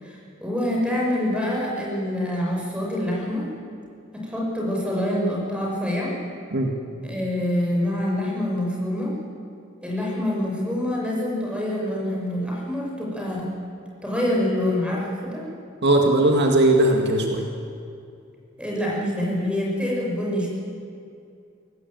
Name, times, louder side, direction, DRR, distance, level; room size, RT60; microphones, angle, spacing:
voice 1, 0.0-3.5 4.1-6.2 7.0-9.2 9.8-13.5 14.0-15.4 18.6-20.5, left 1 dB, 5° right, -3 dB, 6.4 m, -26 dB
voice 2, 15.8-17.5, right 1 dB, 55° right, 2 dB, 2.0 m, -18 dB
23.5 x 17.5 x 9.2 m, 2.5 s
head